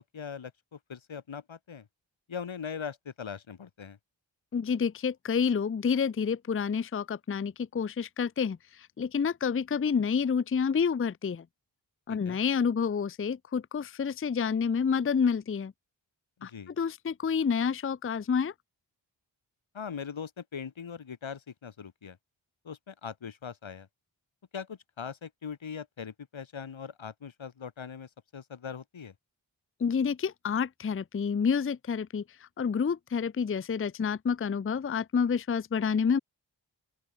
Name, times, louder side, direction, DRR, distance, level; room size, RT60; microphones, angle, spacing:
voice 1, 0.0-1.9 2.3-4.0 12.1-12.4 16.4-16.7 19.7-22.2 22.6-23.9 24.5-29.1, left 6 dB, 85° left, 1.3 m, -41 dB
voice 2, 4.5-11.4 12.1-15.7 16.4-18.5 29.8-36.2, left 6 dB, 30° left, 0.5 m, -29 dB
open air
wide cardioid pair, 45°, 46 cm